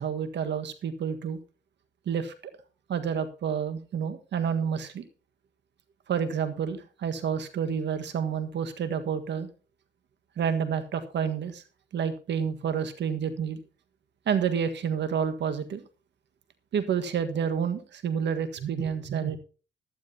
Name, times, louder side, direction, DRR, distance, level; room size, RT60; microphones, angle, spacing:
voice 1, 0.0-1.4 2.0-2.3 2.9-5.0 6.1-9.5 10.4-11.6 11.9-13.6 14.2-15.8 16.7-19.4, right 7 dB, 60° right, 9 dB, 1.6 m, -29 dB
16.0 x 11.5 x 2.8 m, 0.35 s
cardioid pair, 90°, 20 cm